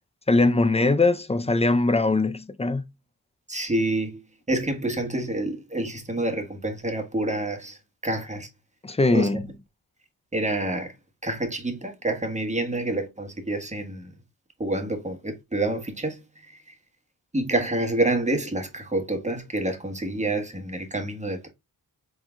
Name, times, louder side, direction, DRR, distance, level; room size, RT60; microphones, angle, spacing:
voice 1, 0.3-2.8 8.8-9.5, left 3 dB, 15° left, 0.5 m, -21 dB
voice 2, 3.5-4.2 4.5-8.5 9.1-9.3 10.3-10.9 11.2-14.1 14.6-16.2 16.5-16.7 17.3-21.5, right 2 dB, 20° right, 1.4 m, -28 dB
4.4 x 3.9 x 2.3 m
cardioid pair, 65°, 37 cm